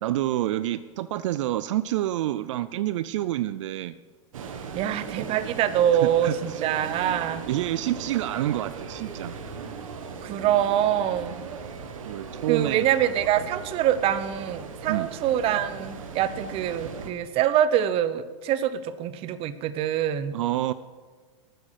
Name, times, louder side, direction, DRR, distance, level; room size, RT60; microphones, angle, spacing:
voice 1, 0.0-4.0 6.0-6.4 7.5-9.4 11.3-11.4 12.0-12.8 14.9-15.1 20.3-20.7, right 14 dB, 70° right, 15 dB, 0.5 m, -28 dB
sound 1, 4.3-17.1, right 5 dB, 85° right, 1.7 m, -38 dB
voice 2, 4.7-7.5 10.2-11.4 12.5-20.3, right 10 dB, 35° right, 14 dB, 0.8 m, -25 dB
12.5 x 9.8 x 6.5 m, 1.4 s
hypercardioid pair, 130°, 17 cm